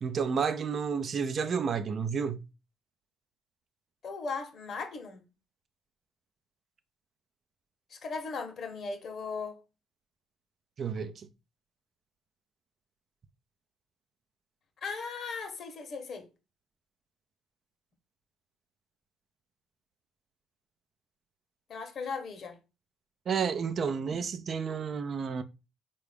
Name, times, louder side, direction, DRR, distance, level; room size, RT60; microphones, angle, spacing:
voice 1, 0.0-2.4 10.8-11.3 23.3-25.4, right 6 dB, 50° right, 0.4 m, -31 dB
voice 2, 4.0-5.3 7.9-9.6 14.8-16.3 21.7-22.6, left 4 dB, 55° left, 0.8 m, -37 dB
3.8 x 2.3 x 3.2 m
hypercardioid pair, 60°, 0 cm